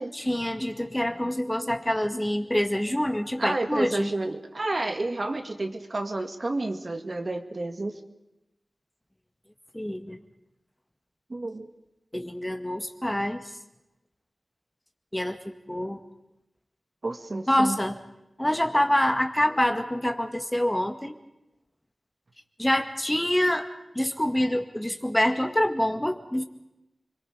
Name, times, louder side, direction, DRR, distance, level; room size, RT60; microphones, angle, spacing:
voice 1, 0.1-4.1 9.7-10.2 12.1-13.4 15.1-15.4 15.7-16.0 17.5-18.0 18.4-21.2 22.6-23.7 24.0-26.4, left 1 dB, 10° left, 5 dB, 1.9 m, -26 dB
voice 2, 3.4-8.0 11.3-11.7 17.0-17.8, right 2 dB, 45° right, 5 dB, 2.0 m, -30 dB
29.5 x 23.0 x 5.0 m, 0.92 s
wide cardioid pair, 65°, 0 cm